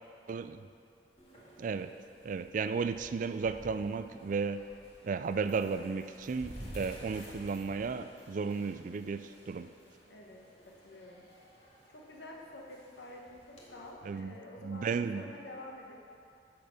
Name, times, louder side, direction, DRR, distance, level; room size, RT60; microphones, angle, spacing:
voice 1, 0.3-0.6 1.6-1.9 2.2-4.7 5.0-9.7 14.1-14.4 14.6-15.3, right 5 dB, 45° right, 11 dB, 0.3 m, -34 dB
sound 1, 1.2-13.9, equal, 35° left, 1.8 m, -53 dB
voice 2, 10.1-10.4 10.7-11.2 11.9-15.9, left 1 dB, 70° left, -1 dB, 1.3 m, -49 dB
10.5 x 4.5 x 6.3 m, 2.4 s
head